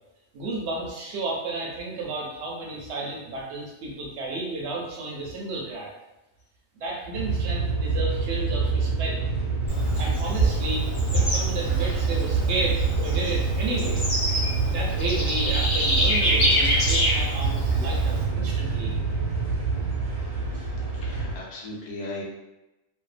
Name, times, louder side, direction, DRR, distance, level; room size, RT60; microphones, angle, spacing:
voice 1, 0.3-5.9 6.8-9.2 10.0-14.0 14.7-18.9, right 2 dB, 65° right, -2 dB, 0.8 m, -32 dB
sound 1, 7.1-21.4, right 4 dB, 90° right, 1.0 m, -27 dB
Bird / Insect, 9.7-18.2, equal, 40° left, 0.8 m, -26 dB
voice 2, 21.0-22.2, left 2 dB, 65° left, -3 dB, 0.9 m, -37 dB
2.7 x 2.1 x 2.4 m, 0.97 s
omnidirectional pair, 1.4 m